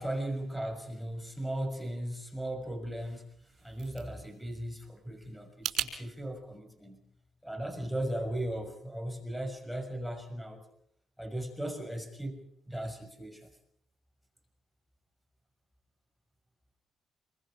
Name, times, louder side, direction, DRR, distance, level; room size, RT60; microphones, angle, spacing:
voice 1, 0.0-3.2 3.6-7.0 7.4-10.6 11.2-13.5, right 1 dB, ahead, 4 dB, 6.1 m, -37 dB
sound 1, 3.3-5.9, right 10 dB, 70° right, 4.0 m, -39 dB
27.0 x 24.0 x 5.0 m, 0.68 s
cardioid pair, 90°, 0 cm